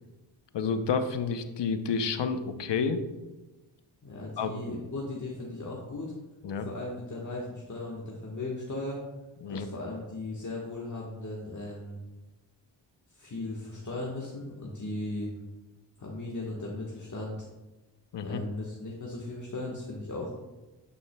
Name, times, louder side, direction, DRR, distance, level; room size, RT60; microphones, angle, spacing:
voice 1, 0.5-3.0 4.4-4.5 6.4-6.7 9.4-9.7 18.1-18.4, left 5 dB, 65° left, 9 dB, 0.8 m, -29 dB
voice 2, 4.0-6.1 6.6-9.0 9.5-12.0 13.1-15.3 16.0-17.5 18.2-20.3, left 2 dB, 40° left, -3 dB, 1.3 m, -37 dB
9.6 x 5.4 x 2.2 m, 1.1 s
cardioid pair, 40°, 46 cm